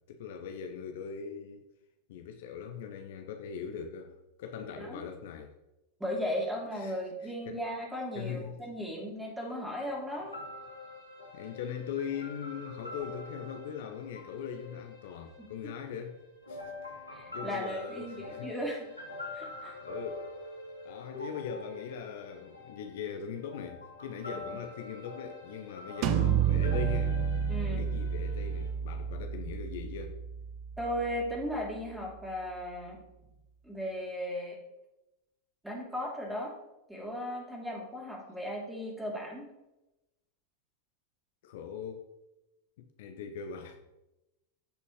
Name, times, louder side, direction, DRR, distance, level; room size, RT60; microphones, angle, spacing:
voice 1, 0.1-1.7 2.1-5.5 6.7-7.6 8.1-8.6 11.3-16.2 16.5-18.5 19.8-20.3 20.8-27.2 27.7-30.2 41.4-42.1 42.8-43.8, left 7 dB, 55° left, 5 dB, 0.8 m, -41 dB
voice 2, 6.0-10.4 17.1-18.9 19.3-19.7 27.5-27.9 30.8-33.0 33.6-34.6 35.6-36.5 36.9-39.4, equal, 5° right, -2 dB, 3.1 m, -36 dB
sound 1, 9.8-15.8 16.4-28.7, left 2 dB, 85° left, 2.1 m, -45 dB
sound 2, 26.0-31.7, right 8 dB, 40° right, 0.6 m, -31 dB
15.5 x 5.4 x 3.2 m, 0.96 s
figure-of-eight pair, 90°, 0 cm